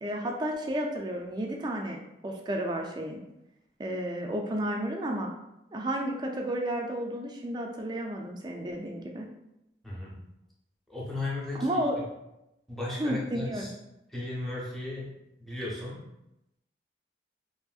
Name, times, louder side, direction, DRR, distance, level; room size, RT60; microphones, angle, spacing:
voice 1, 0.0-3.2 3.8-5.3 5.7-9.3 11.6-12.0 13.0-13.7, right 1 dB, 25° right, 1 dB, 0.3 m, -32 dB
voice 2, 9.8-10.2 10.9-12.1 12.7-13.7 14.1-15.1 15.4-16.0, left 2 dB, ahead, -6 dB, 0.7 m, -36 dB
2.9 x 2.6 x 2.3 m, 0.88 s
head